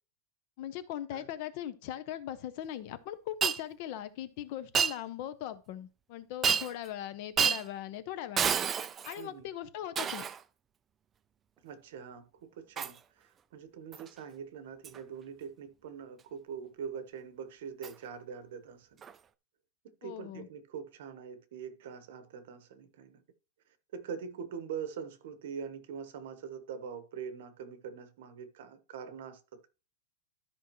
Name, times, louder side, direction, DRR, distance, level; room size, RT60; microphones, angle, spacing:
voice 1, 0.6-8.6 9.0-10.2 20.0-20.5, left 11 dB, 40° left, 0.8 m, -40 dB
Shatter, 3.4-3.6 4.7-5.0 6.4-6.9 7.4-7.6 8.4-9.2 9.9-10.4 12.8-13.0 13.9-14.1 14.8-15.0 17.8-17.9 19.0-19.1, right 7 dB, 15° right, 0.3 m, -29 dB
voice 2, 9.2-9.5 11.6-19.0 19.8-23.2 23.9-29.7, right 7 dB, 55° right, 1.2 m, -43 dB
13.0 x 5.4 x 3.1 m
supercardioid pair, 175°, 0 cm